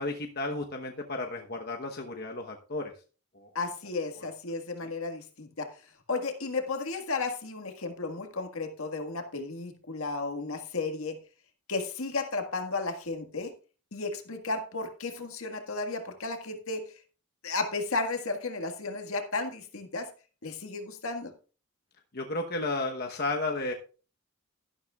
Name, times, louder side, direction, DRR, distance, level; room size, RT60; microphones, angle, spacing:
voice 1, 0.0-2.9 3.3-3.5 4.2-4.3 4.8-4.9 22.1-23.7, left 2 dB, 45° left, 2 dB, 1.1 m, -33 dB
voice 2, 3.6-5.7 6.1-11.2 11.7-13.5 13.9-16.8 17.4-20.1 20.4-21.3, left 3 dB, 70° left, 6 dB, 1.7 m, -33 dB
13.0 x 11.5 x 2.4 m, 0.36 s
head